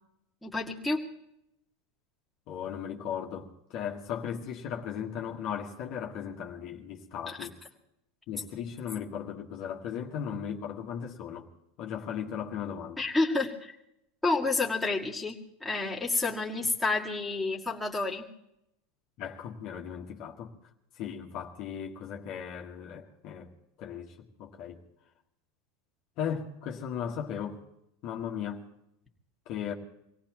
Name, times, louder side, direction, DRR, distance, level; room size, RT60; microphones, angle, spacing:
voice 1, 0.4-1.0 7.3-7.4 13.0-13.8 14.2-18.3, left 3 dB, 5° left, -3 dB, 2.1 m, -29 dB
voice 2, 2.5-7.6 8.3-11.5 11.8-13.0 19.2-20.5 20.9-23.5 23.8-24.8 26.2-27.6 28.0-28.6 29.4-29.7, left 8 dB, 55° left, 1 dB, 1.6 m, -37 dB
25.0 x 17.5 x 3.1 m, 0.82 s
hypercardioid pair, 95°, 0 cm